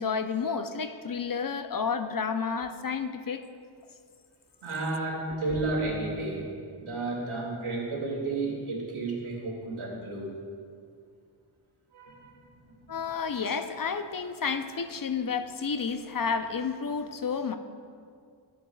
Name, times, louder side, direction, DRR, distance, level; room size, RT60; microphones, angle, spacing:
voice 1, 0.0-3.4 5.5-5.6 12.9-17.6, left 5 dB, 45° left, 9 dB, 0.6 m, -31 dB
voice 2, 4.6-6.4 6.7-10.3 11.9-12.3, right 2 dB, 80° right, -2 dB, 2.4 m, -32 dB
17.5 x 7.5 x 2.3 m, 2.3 s
cardioid pair, 60°, 48 cm